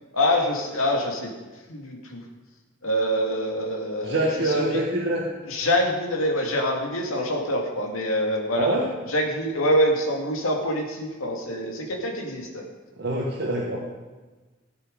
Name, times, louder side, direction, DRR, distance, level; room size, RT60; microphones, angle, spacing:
voice 1, 0.1-1.3 1.7-2.2 2.8-4.8 5.5-8.7 9.1-12.6, equal, 85° left, 1 dB, 2.2 m, -25 dB
voice 2, 4.0-5.3 8.6-8.8 13.0-13.8, right 1 dB, 55° right, -2 dB, 1.5 m, -25 dB
16.5 x 7.4 x 5.3 m, 1.3 s
head